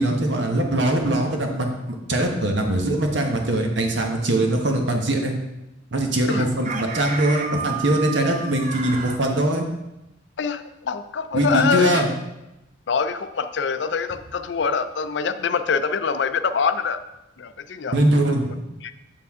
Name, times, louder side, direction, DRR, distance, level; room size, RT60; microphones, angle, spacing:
voice 1, 0.0-5.3 5.9-9.6 11.3-12.1 17.9-18.6, right 1 dB, 65° right, 3 dB, 1.2 m, -22 dB
Chicken rooster, 6.3-9.2, right 5 dB, 40° right, 0.6 m, -31 dB
voice 2, 10.4-12.0 12.9-17.0 17.4-17.9 18.8-18.9, left 5 dB, 65° left, 11 dB, 0.4 m, -24 dB
7.4 x 6.8 x 3.6 m, 0.93 s
head